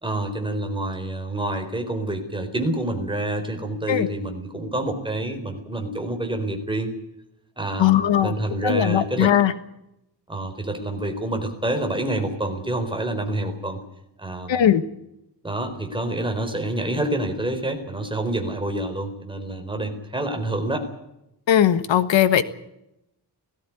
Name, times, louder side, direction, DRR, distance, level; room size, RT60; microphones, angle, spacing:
voice 1, 0.0-6.9 7.6-9.3 10.3-13.8 14.2-14.7 15.4-20.8, right 1 dB, 10° right, 4 dB, 4.3 m, -27 dB
voice 2, 7.8-8.3 8.6-9.5 14.5-14.8 21.5-22.4, left 10 dB, 85° left, 12 dB, 1.5 m, -18 dB
18.5 x 16.0 x 9.7 m, 0.84 s
wide cardioid pair, 150°, 43 cm